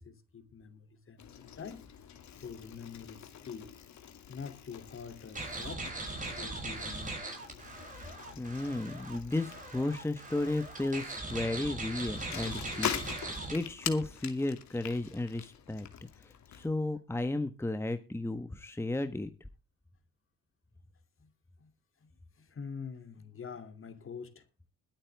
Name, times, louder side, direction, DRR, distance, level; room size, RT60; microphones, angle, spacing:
voice 1, 0.0-1.8 2.3-3.7 4.3-5.8 6.3-7.4 21.2-21.3 21.6-21.7 22.0-22.1 22.4-24.5, left 6 dB, 45° left, 2.9 m, -45 dB
Bicycle, 1.2-16.7, left 9 dB, 65° left, 2.5 m, -44 dB
sound 1, 5.3-13.5, right 2 dB, 25° right, 6.6 m, -40 dB
voice 2, 8.3-12.9 13.5-15.9 16.2-19.3, left 2 dB, 10° left, 1.2 m, -34 dB
22.0 x 8.9 x 3.4 m
cardioid pair, 90°, 30 cm